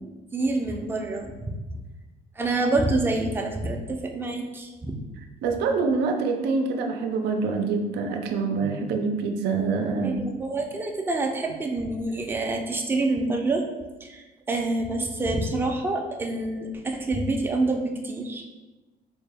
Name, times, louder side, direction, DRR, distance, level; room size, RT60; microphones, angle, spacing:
voice 1, 0.3-1.8 2.4-5.0 10.0-13.7 14.0-18.4, right 2 dB, 15° right, 2 dB, 0.4 m, -27 dB
voice 2, 5.4-10.2, right 4 dB, 80° right, 4 dB, 0.5 m, -25 dB
4.2 x 2.2 x 3.4 m, 1.1 s
cardioid pair, 110°, 17 cm